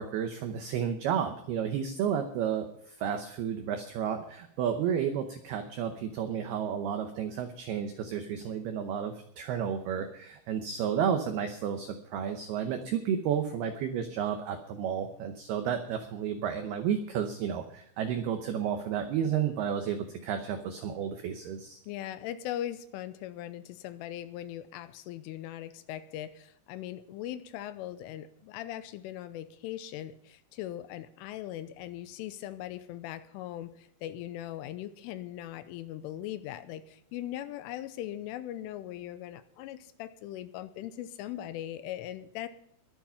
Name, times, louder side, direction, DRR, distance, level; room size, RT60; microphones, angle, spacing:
voice 1, 0.0-21.8, right 8 dB, 90° right, 7 dB, 2.2 m, -32 dB
voice 2, 21.9-42.5, left 12 dB, 80° left, 12 dB, 3.1 m, -40 dB
22.0 x 7.4 x 5.7 m, 0.68 s
omnidirectional pair, 5.9 m